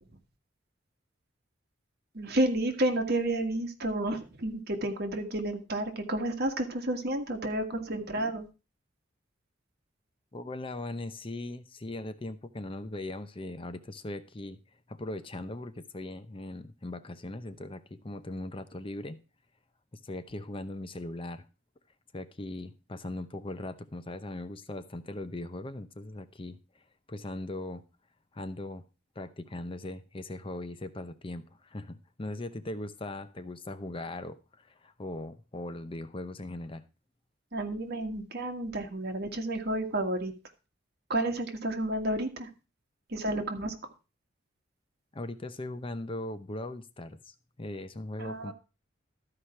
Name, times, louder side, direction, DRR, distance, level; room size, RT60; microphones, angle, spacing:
voice 1, 2.1-8.5 37.5-40.3 41.1-42.5 43.1-43.7 48.2-48.5, right 1 dB, 60° right, 4 dB, 1.8 m, -31 dB
voice 2, 10.3-14.6 14.9-19.2 20.0-21.4 22.1-26.8 27.1-27.8 28.3-28.8 29.2-36.8 45.1-48.5, left 2 dB, 30° left, 11 dB, 0.7 m, -39 dB
13.0 x 4.9 x 5.9 m, 0.31 s
head